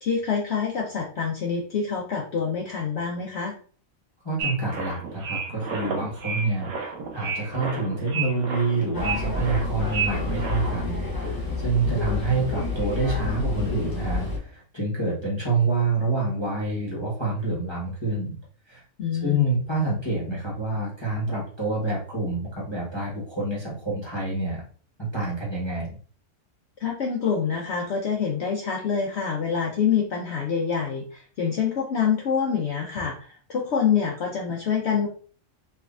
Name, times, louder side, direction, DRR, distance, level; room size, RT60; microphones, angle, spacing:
voice 1, 0.0-3.5 19.0-19.5 26.8-35.1, left 6 dB, 60° left, -1 dB, 0.8 m, -26 dB
voice 2, 4.2-18.4 18.7-18.8 19.2-24.6 25.0-26.0, right 2 dB, 20° left, -6 dB, 1.0 m, -27 dB
sound 1, 4.4-10.9, right 5 dB, 80° right, 1.1 m, -32 dB
sound 2, 8.9-14.4, left 3 dB, 35° left, 0.3 m, -29 dB
3.4 x 3.2 x 2.4 m, 0.42 s
omnidirectional pair, 1.5 m